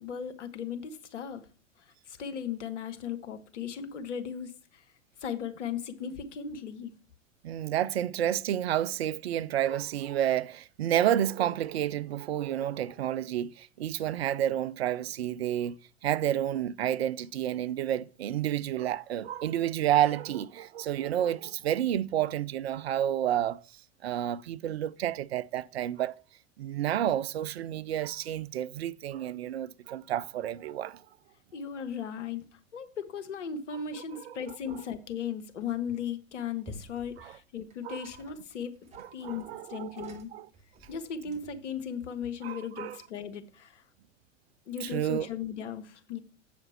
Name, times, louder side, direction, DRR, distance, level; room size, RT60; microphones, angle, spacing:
voice 1, 0.0-1.4 2.1-4.5 5.2-6.9 31.5-32.4 32.7-38.8 39.1-40.3 40.9-43.8 44.7-46.2, left 7 dB, 65° left, 1.2 m, -37 dB
voice 2, 7.4-15.8 16.0-23.6 24.0-26.2 26.6-31.0 34.1-34.4 34.7-34.8 37.2-37.4 37.8-38.1 38.9-40.5 42.4-43.0 44.8-45.3, right 11 dB, 55° right, 0.5 m, -30 dB
sound 1, 35.7-36.2 36.6-41.7, equal, 15° right, 1.3 m, -52 dB
7.8 x 5.0 x 5.8 m
figure-of-eight pair, 90°, 39 cm